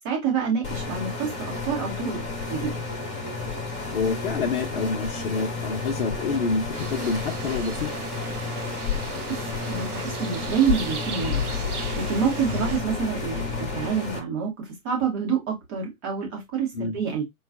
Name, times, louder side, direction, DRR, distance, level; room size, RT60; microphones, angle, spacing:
voice 1, 0.0-2.8 9.0-11.5 11.9-17.2, right 6 dB, 20° right, 0.9 m, -27 dB
sound 1, 0.6-14.2, left 4 dB, 15° left, 1.0 m, -32 dB
voice 2, 3.9-7.9 12.5-12.7 16.7-17.0, left 4 dB, 45° left, 0.9 m, -27 dB
sound 2, 6.7-12.8, right 5 dB, 85° right, 0.9 m, -38 dB
sound 3, 8.0-13.9, left 7 dB, ahead, 0.5 m, -36 dB
3.8 x 2.3 x 3.5 m
figure-of-eight pair, 135°, 43 cm